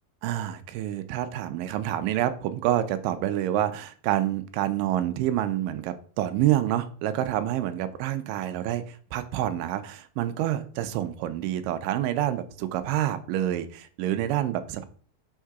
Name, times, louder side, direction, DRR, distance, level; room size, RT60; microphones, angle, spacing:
voice 1, 0.2-14.8, right 12 dB, 80° right, 10 dB, 2.1 m, -27 dB
6.4 x 3.7 x 4.7 m, 0.43 s
omnidirectional pair, 4.2 m